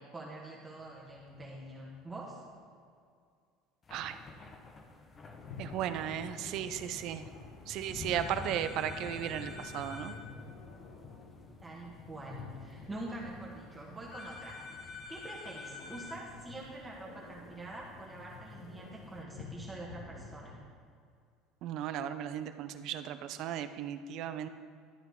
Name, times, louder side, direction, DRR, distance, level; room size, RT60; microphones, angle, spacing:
voice 1, 0.0-2.4 11.6-14.6 15.1-20.6, right 2 dB, 15° right, -4 dB, 1.3 m, -45 dB
sound 1, 0.8-2.5 3.8-19.2, left 4 dB, 30° left, 0.8 m, -51 dB
sound 2, 5.3-20.6, left 4 dB, 85° left, 1.1 m, -51 dB
voice 2, 5.6-7.2 7.7-10.1 21.6-24.5, right 10 dB, 60° right, 11 dB, 0.5 m, -36 dB
sound 3, 8.1-10.2 14.1-16.2, left 4 dB, 50° left, 1.5 m, -47 dB
12.0 x 5.8 x 3.5 m, 2.2 s
supercardioid pair, 115°, 0 cm